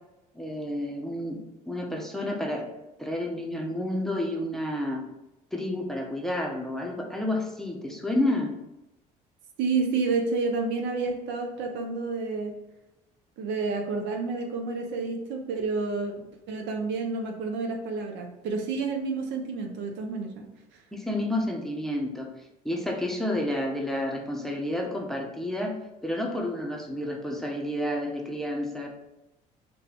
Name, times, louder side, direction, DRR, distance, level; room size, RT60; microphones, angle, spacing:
voice 1, 0.3-1.4 1.7-2.7 3.0-5.0 5.5-8.5 20.9-22.3 22.6-25.8 26.0-28.9, left 1 dB, ahead, 1 dB, 0.7 m, -30 dB
voice 2, 9.6-12.5 13.4-16.1 16.5-20.5 20.7-20.8, right 4 dB, 65° right, 3 dB, 0.6 m, -29 dB
2.6 x 2.3 x 4.1 m, 0.93 s
hypercardioid pair, 60°, 20 cm